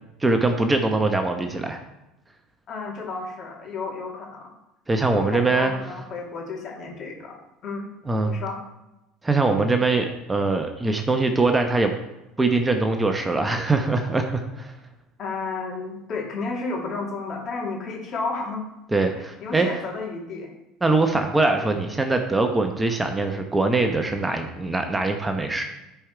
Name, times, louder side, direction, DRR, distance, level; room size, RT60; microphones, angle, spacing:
voice 1, 0.2-1.8 4.9-5.7 8.1-8.3 9.2-11.9 12.4-14.7 18.9-19.7 20.8-25.6, right 3 dB, 15° right, 5 dB, 0.9 m, -22 dB
voice 2, 2.7-4.5 5.1-7.9 8.2-8.6 15.2-18.6 19.1-20.5, left 4 dB, 45° left, -1 dB, 2.7 m, -32 dB
10.0 x 4.8 x 4.6 m, 0.94 s
hypercardioid pair, 85°, 0 cm